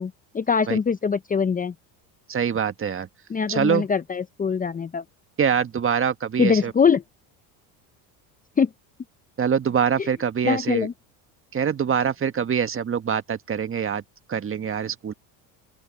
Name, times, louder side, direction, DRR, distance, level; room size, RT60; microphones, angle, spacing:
voice 1, 0.0-1.7 3.3-5.0 6.4-7.0 8.6-8.7 10.0-10.1 10.4-10.9, left 6 dB, 20° left, 0.7 m, -23 dB
voice 2, 2.3-3.1 3.5-3.9 5.4-6.7 9.4-10.9 11.5-14.0 14.3-15.1, right 7 dB, 30° right, 1.5 m, -24 dB
open air
supercardioid pair, 100°, 43 cm